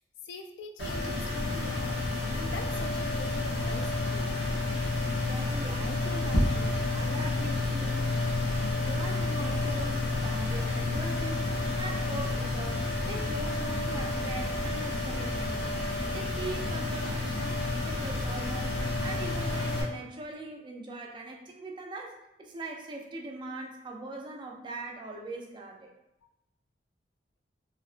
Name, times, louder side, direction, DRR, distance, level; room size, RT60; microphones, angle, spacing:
voice 1, 0.2-2.0 2.3-4.3, left 3 dB, 90° left, 4 dB, 0.3 m, -43 dB
sound 1, 0.8-19.8, left 2 dB, 70° left, 0.8 m, -30 dB
voice 2, 5.1-8.4 8.8-15.8 16.1-25.9, right 2 dB, 25° right, 1 dB, 0.3 m, -41 dB
2.7 x 2.1 x 2.4 m, 0.88 s
head